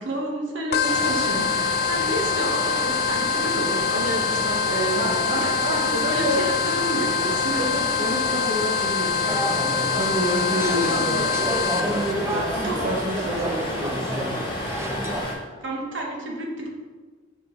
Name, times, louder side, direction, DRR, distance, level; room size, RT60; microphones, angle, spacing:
voice 1, 0.0-7.7 10.4-11.8 12.6-13.0 15.6-16.7, right 1 dB, 70° right, -1 dB, 1.2 m, -30 dB
sound 1, 0.7-12.1, left 6 dB, 50° left, 0.4 m, -25 dB
sound 2, 0.8-15.3, left 1 dB, 25° left, 1.2 m, -31 dB
voice 2, 5.0-6.6 7.6-14.7, equal, 40° right, -3 dB, 0.8 m, -29 dB
sound 3, 9.3-15.2, right 1 dB, 15° right, 0.4 m, -31 dB
5.6 x 4.8 x 3.7 m, 1.4 s
head